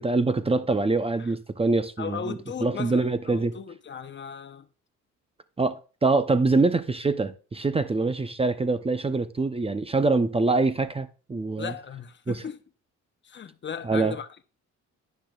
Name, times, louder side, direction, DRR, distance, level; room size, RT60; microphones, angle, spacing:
voice 1, 0.0-3.5 5.6-11.7 12.3-12.4 13.8-14.2, right 3 dB, 20° right, 0.6 m, -24 dB
voice 2, 2.0-4.6 11.6-12.6 13.2-14.3, left 7 dB, 40° left, 0.8 m, -37 dB
10.0 x 10.0 x 2.3 m
cardioid pair, 90°, 30 cm